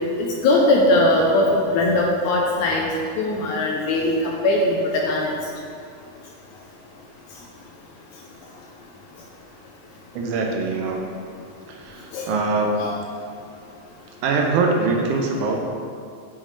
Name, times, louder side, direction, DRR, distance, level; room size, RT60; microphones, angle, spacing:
voice 1, 0.2-2.9 3.2-5.3 12.1-12.3 12.8-12.9, left 2 dB, 80° left, -1 dB, 1.8 m, -20 dB
voice 2, 10.1-11.0 11.7-12.8 14.2-15.6, right 3 dB, 80° right, 1 dB, 2.0 m, -23 dB
7.2 x 6.0 x 3.2 m, 2.4 s
omnidirectional pair, 3.8 m